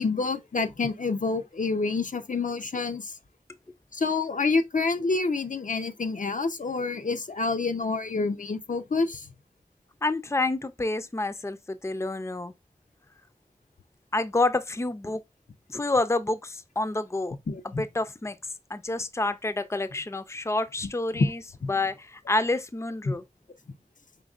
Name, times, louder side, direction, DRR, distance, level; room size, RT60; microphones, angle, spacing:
voice 1, 0.0-3.1 3.9-9.3 17.5-17.8 21.1-21.3 21.6-21.7 23.1-23.2, left 3 dB, 65° left, 0.6 m, -27 dB
voice 2, 10.0-12.5 14.1-15.2 15.7-17.4 17.6-18.4 18.7-21.4 21.7-23.2, left 2 dB, 20° left, 0.5 m, -28 dB
5.2 x 3.5 x 2.4 m
wide cardioid pair, 40°, 14 cm